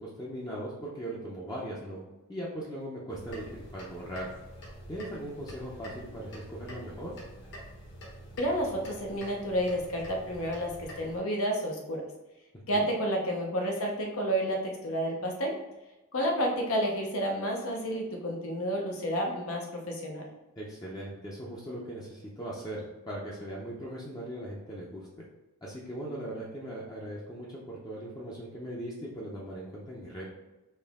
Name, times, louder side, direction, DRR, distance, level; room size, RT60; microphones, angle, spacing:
voice 1, 0.0-2.0 2.3-4.3 4.9-7.1 12.7-12.9 20.6-25.2 25.6-30.2, right 1 dB, 15° left, -5 dB, 0.6 m, -39 dB
sound 1, 3.1-11.2, equal, 55° left, 1.2 m, -46 dB
voice 2, 8.4-12.0 12.7-15.6 16.1-20.3, equal, 75° left, 1 dB, 0.9 m, -30 dB
4.4 x 3.0 x 3.5 m, 1.0 s
head